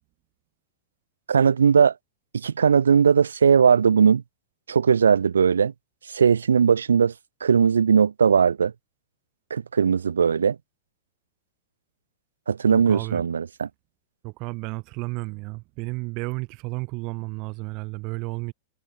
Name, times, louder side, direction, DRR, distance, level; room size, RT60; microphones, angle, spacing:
voice 1, 1.3-1.9 2.3-4.2 4.7-5.7 6.1-7.1 7.4-8.7 9.5-10.6 12.5-13.7, right 6 dB, 70° right, 0.8 m, -19 dB
voice 2, 12.7-13.2 14.2-18.5, right 26 dB, 40° right, 1.6 m, -32 dB
figure-of-eight pair, 90°, 0 cm